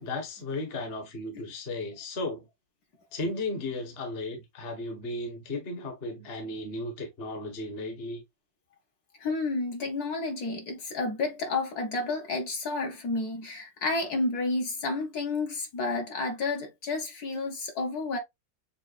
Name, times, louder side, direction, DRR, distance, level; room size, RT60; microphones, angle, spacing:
voice 1, 0.0-2.4 3.1-8.2, left 2 dB, 40° left, 1.1 m, -35 dB
voice 2, 9.2-18.2, left 3 dB, 60° left, 1.4 m, -31 dB
6.9 x 2.4 x 2.3 m
omnidirectional pair, 2.0 m